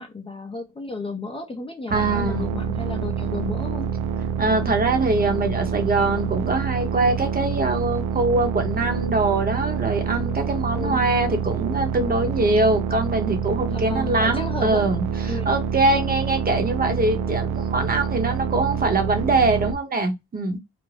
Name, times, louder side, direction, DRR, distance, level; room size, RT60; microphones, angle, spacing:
voice 1, 0.0-3.9 10.7-11.1 13.7-14.9 15.3-15.5, left 3 dB, 20° left, 0.5 m, -33 dB
voice 2, 1.9-2.4 4.4-20.6, right 2 dB, 30° right, 0.9 m, -23 dB
sound 1, 1.9-19.7, right 7 dB, 90° right, 0.6 m, -27 dB
2.5 x 2.1 x 3.2 m
cardioid pair, 90°, 30 cm